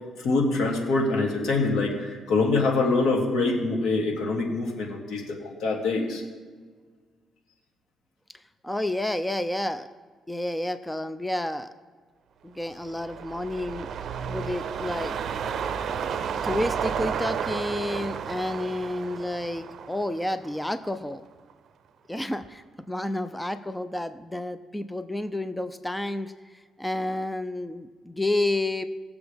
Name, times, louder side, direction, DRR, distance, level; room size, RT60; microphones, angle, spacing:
voice 1, 0.2-6.2, left 3 dB, 80° left, -1 dB, 2.6 m, -25 dB
voice 2, 8.6-9.9 10.3-11.7 12.4-13.9 14.3-15.1 16.4-21.2 22.1-28.9, left 1 dB, 5° left, 10 dB, 0.5 m, -30 dB
sound 1, 12.7-21.1 21.5-21.6, right 7 dB, 60° right, 0.6 m, -32 dB
19.5 x 7.0 x 3.5 m, 1.5 s
cardioid pair, 90°, 0 cm